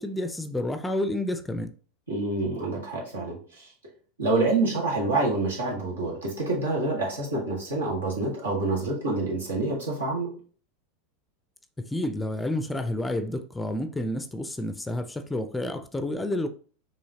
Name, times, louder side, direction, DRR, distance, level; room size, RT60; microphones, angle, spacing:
voice 1, 0.0-1.7 11.8-16.5, left 1 dB, 10° left, 0.5 m, -30 dB
voice 2, 2.1-3.7 4.2-10.3, right 2 dB, 80° right, 1.7 m, -27 dB
5.5 x 3.1 x 2.9 m
hypercardioid pair, 85°, 0 cm